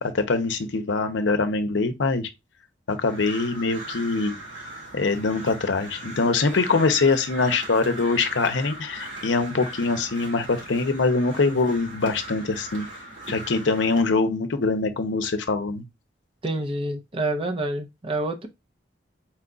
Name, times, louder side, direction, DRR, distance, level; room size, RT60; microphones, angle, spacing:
voice 1, 0.0-2.3 2.9-4.3 4.9-12.9 13.3-15.8, left 3 dB, 75° left, 0.6 m, -23 dB
Crow, 3.0-14.0, right 1 dB, 90° right, 2.3 m, -39 dB
voice 2, 16.4-18.5, right 2 dB, 30° right, 0.7 m, -28 dB
4.4 x 2.4 x 3.8 m
head